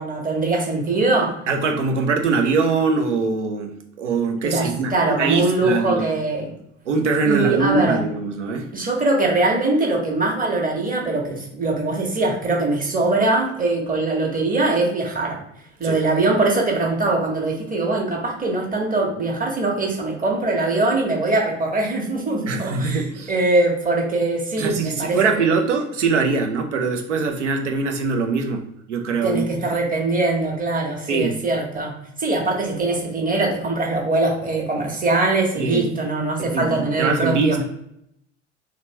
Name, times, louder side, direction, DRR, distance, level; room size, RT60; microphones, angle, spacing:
voice 1, 0.0-1.3 4.4-6.5 7.2-8.0 8.7-15.4 15.8-25.5 29.2-31.9 32.2-37.6, right 2 dB, 25° right, -1 dB, 1.5 m, -22 dB
voice 2, 1.5-6.0 6.9-8.7 15.8-16.0 22.5-23.3 24.6-29.4 31.1-31.4 35.5-35.9 36.5-37.6, right 4 dB, 80° right, 5 dB, 0.8 m, -22 dB
4.0 x 3.0 x 3.3 m, 0.77 s
figure-of-eight pair, 60°, 35 cm